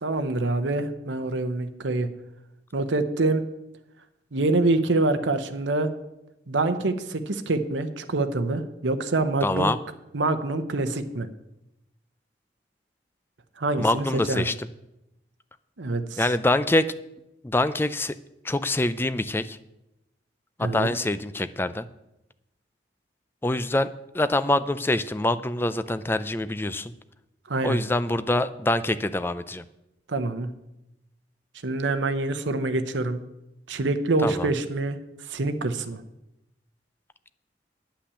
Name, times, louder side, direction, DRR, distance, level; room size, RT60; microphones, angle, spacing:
voice 1, 0.0-2.1 2.7-3.4 4.3-5.9 6.5-9.7 10.1-11.3 13.6-14.5 15.8-16.3 20.6-20.9 27.5-27.8 30.1-30.5 31.6-33.2 33.7-35.0 35.3-36.0, right 2 dB, 80° right, 8 dB, 0.8 m, -25 dB
voice 2, 9.4-9.8 13.8-14.5 16.2-16.9 17.4-18.1 18.4-19.6 20.6-21.9 23.4-26.9 27.6-29.6 34.2-34.5, left 1 dB, 10° left, 13 dB, 0.3 m, -25 dB
9.9 x 5.9 x 8.4 m, 0.91 s
head